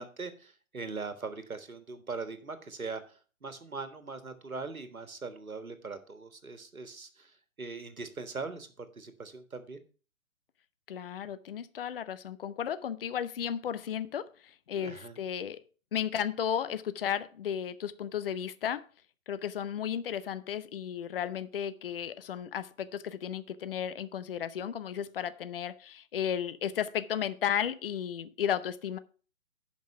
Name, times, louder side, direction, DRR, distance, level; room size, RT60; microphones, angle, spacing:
voice 1, 0.0-9.8 14.8-15.2, right 4 dB, 85° right, 1.6 m, -41 dB
voice 2, 10.9-15.6 15.9-18.8 19.3-29.0, left 9 dB, 45° left, 0.6 m, -34 dB
11.0 x 5.5 x 5.5 m
figure-of-eight pair, 135°, 41 cm